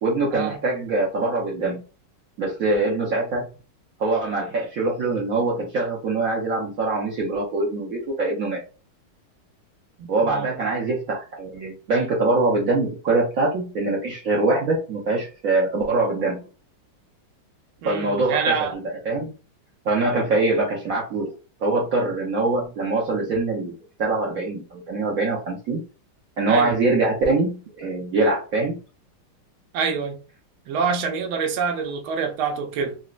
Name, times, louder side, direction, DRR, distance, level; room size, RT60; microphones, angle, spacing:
voice 1, 0.0-1.8 2.4-3.4 4.0-8.6 10.1-16.4 17.8-19.3 19.8-21.3 21.6-25.8 26.4-28.8, right 2 dB, 65° right, 0.8 m, -23 dB
voice 2, 10.0-10.7 17.8-18.8 26.5-26.8 29.7-30.2 30.7-33.0, right 5 dB, 85° right, 1.5 m, -26 dB
4.0 x 2.1 x 2.4 m
omnidirectional pair, 2.3 m